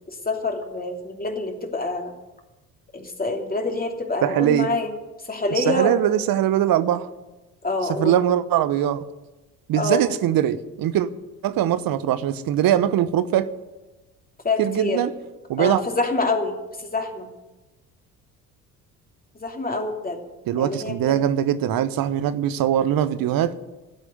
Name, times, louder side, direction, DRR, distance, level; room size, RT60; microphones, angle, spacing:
voice 1, 0.1-2.1 2.9-4.9 5.3-5.9 7.6-8.2 9.8-10.0 14.4-15.0 15.6-17.3 19.4-20.2 20.6-21.2, left 2 dB, 20° left, 2 dB, 2.9 m, -26 dB
voice 2, 4.2-4.7 5.5-7.1 7.9-9.1 9.7-11.1 11.4-13.5 14.6-15.1 15.5-15.8 20.5-23.5, right 11 dB, 50° right, 14 dB, 1.0 m, -21 dB
16.0 x 8.1 x 9.5 m, 1.1 s
figure-of-eight pair, 55°, 46 cm